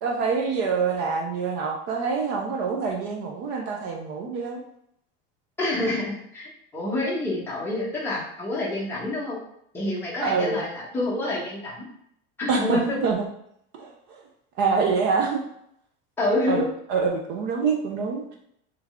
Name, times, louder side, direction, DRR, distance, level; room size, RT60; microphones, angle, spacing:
voice 1, 0.0-4.6 10.2-10.6 12.5-13.2 13.7-14.2 14.6-15.4 16.5-18.4, right 5 dB, 35° right, 2 dB, 0.4 m, -26 dB
voice 2, 5.6-9.4 9.7-11.8 12.4-13.0 16.2-16.7, left 2 dB, 5° left, -6 dB, 0.9 m, -27 dB
3.5 x 3.2 x 3.5 m, 0.71 s
cardioid pair, 180°, 30 cm